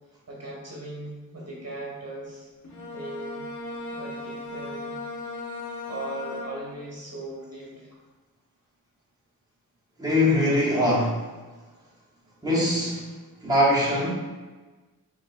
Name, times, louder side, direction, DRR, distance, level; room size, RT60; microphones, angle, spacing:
voice 1, 0.3-2.5 2.9-3.4 3.9-5.0 5.9-7.9, right 1 dB, 45° right, -4 dB, 1.0 m, -38 dB
Bowed string instrument, 2.6-6.9, left 2 dB, 55° left, 0.9 m, -37 dB
voice 2, 10.0-11.3 12.4-13.0 13.4-14.1, left 1 dB, 10° right, -6 dB, 1.0 m, -22 dB
5.0 x 3.0 x 2.5 m, 1.3 s
wide cardioid pair, 95°, 35 cm